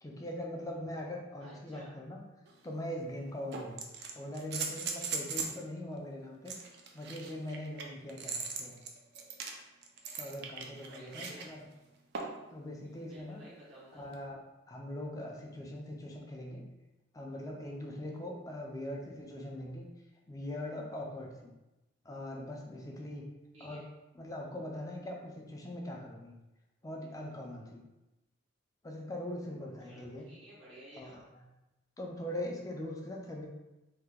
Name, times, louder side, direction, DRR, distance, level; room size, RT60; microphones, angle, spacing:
voice 1, 0.0-2.2 2.6-3.8 4.2-6.6 6.9-8.8 10.2-11.6 12.5-13.5 13.9-14.4 14.7-16.7 17.1-19.9 20.3-21.5 22.0-23.3 23.6-23.9 24.2-26.3 26.8-27.9 28.8-30.3 31.0-31.4 32.0-33.5, left 1 dB, 20° left, 0 dB, 0.4 m, -41 dB
voice 2, 1.4-1.9 10.8-11.5 13.1-14.1 23.5-23.8 29.8-31.2, right 1 dB, 80° right, -8 dB, 0.8 m, -53 dB
sound 1, 2.5-2.6 3.5-5.6 6.5-11.5 12.1-12.5 14.1-14.2, right 5 dB, 55° right, 0.4 m, -39 dB
2.7 x 2.2 x 3.5 m, 1.0 s
head